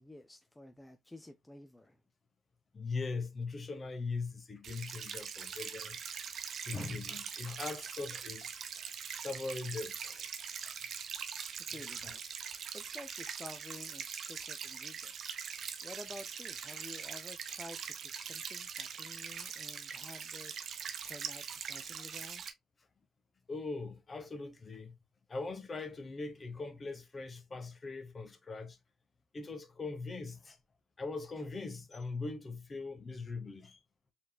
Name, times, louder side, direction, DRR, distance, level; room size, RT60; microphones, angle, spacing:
voice 1, 0.0-2.0 11.7-22.4, left 1 dB, 15° left, 0.5 m, -51 dB
voice 2, 2.7-6.0 6.6-8.6 9.2-10.3 10.6-10.8 11.8-11.9 19.5-19.6 23.5-24.9 25.3-28.8 29.3-30.6 31.0-33.8, left 3 dB, 35° left, 1.0 m, -41 dB
sound 1, 4.6-22.5, right 7 dB, 65° right, 0.7 m, -42 dB
4.5 x 3.8 x 2.3 m
cardioid pair, 70°, 0 cm